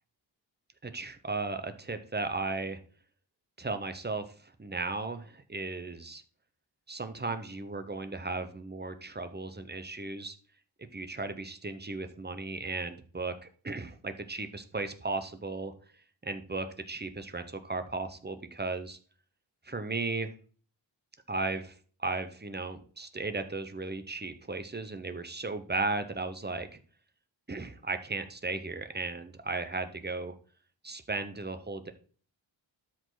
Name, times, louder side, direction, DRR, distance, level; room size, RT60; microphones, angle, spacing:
voice 1, 0.8-2.8 3.6-6.2 6.9-10.3 10.9-15.7 16.2-19.0 19.6-20.3 21.3-26.8 27.5-30.3 30.8-31.9, right 3 dB, 20° right, 9 dB, 1.0 m, -36 dB
12.5 x 5.2 x 4.0 m, 0.43 s
wide cardioid pair, 115°, 46 cm